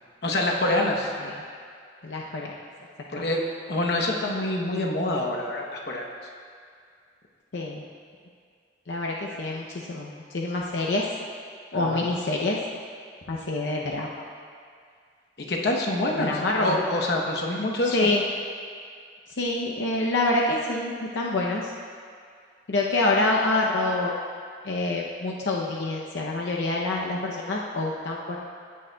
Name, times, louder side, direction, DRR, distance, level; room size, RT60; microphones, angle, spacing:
voice 1, 0.2-1.1 3.1-3.4 3.7-6.1 11.8-12.0 15.5-16.3 16.6-18.1, left 1 dB, 60° left, -1 dB, 0.9 m, -26 dB
voice 2, 2.0-2.6 3.2-3.3 7.5-7.8 8.9-11.0 11.7-12.6 13.3-14.1 16.1-16.8 17.9-18.3 19.4-21.7 22.7-24.1 24.6-28.4, left 2 dB, 85° left, -2 dB, 0.7 m, -26 dB
16.5 x 6.4 x 2.3 m, 2.2 s
head